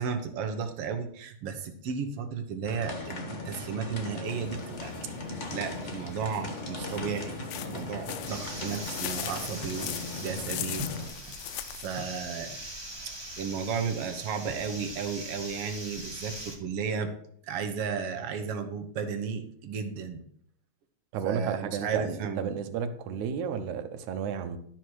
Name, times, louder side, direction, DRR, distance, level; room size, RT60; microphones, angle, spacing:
voice 1, 0.0-4.9 5.3-7.4 7.7-11.1 11.8-12.5 13.1-17.1 17.4-20.2 21.2-22.5, right 6 dB, 60° right, 6 dB, 1.9 m, -34 dB
sound 1, 2.6-11.1, left 2 dB, 30° left, 1.4 m, -38 dB
sound 2, 4.3-12.0, left 12 dB, 75° left, 1.5 m, -40 dB
sound 3, 8.2-16.6, right 1 dB, 15° right, 1.0 m, -41 dB
voice 2, 21.1-24.6, right 7 dB, 85° right, 9 dB, 2.3 m, -32 dB
12.5 x 4.5 x 6.3 m, 0.65 s
omnidirectional pair, 3.3 m